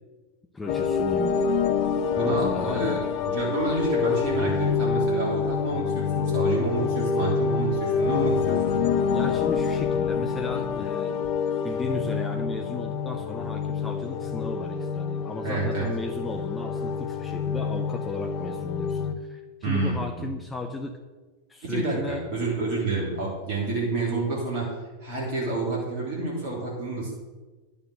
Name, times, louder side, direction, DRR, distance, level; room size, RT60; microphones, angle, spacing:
voice 1, 0.5-1.4 2.2-3.0 9.1-11.2 11.6-21.0 21.5-22.2, left 2 dB, 10° left, 4 dB, 0.8 m, -35 dB
sound 1, 0.7-19.1, left 6 dB, 45° left, 0.8 m, -26 dB
voice 2, 2.1-3.0 3.2-8.7 15.4-15.9 19.6-20.3 21.6-24.7 25.0-27.1, right 3 dB, 50° right, -3 dB, 3.4 m, -29 dB
10.5 x 7.3 x 6.3 m, 1.3 s
figure-of-eight pair, 90°, 0 cm